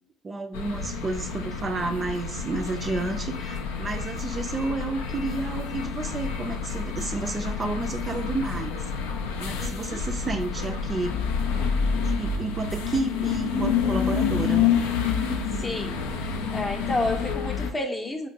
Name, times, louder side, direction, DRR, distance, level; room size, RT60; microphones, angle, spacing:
voice 1, 0.2-8.9 9.4-11.1 12.0-14.7, right 3 dB, 35° right, 6 dB, 0.4 m, -31 dB
sound 1, 0.5-17.7, left 6 dB, 75° left, 0.4 m, -28 dB
voice 2, 9.6-10.0 15.6-16.0 16.3-18.3, left 1 dB, 20° left, 4 dB, 0.7 m, -30 dB
4.3 x 2.5 x 2.7 m, 0.65 s
hypercardioid pair, 55°, 0 cm